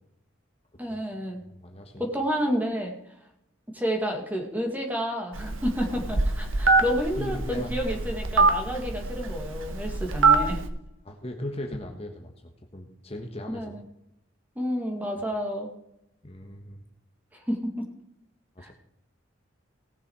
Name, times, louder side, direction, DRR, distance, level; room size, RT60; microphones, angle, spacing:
voice 1, 0.8-1.4 2.0-3.0 3.7-10.6 13.5-13.8 14.6-15.7 17.3-17.9 18.6-18.7, equal, 10° right, 2 dB, 2.2 m, -30 dB
voice 2, 1.4-2.0 7.2-7.7 8.0-8.1 11.0-13.7 16.2-16.8 18.5-18.7, left 1 dB, 30° left, 2 dB, 1.4 m, -38 dB
Telephone, 5.3-10.7, right 3 dB, 80° right, 1.4 m, -24 dB
18.0 x 7.0 x 4.8 m, 0.79 s
head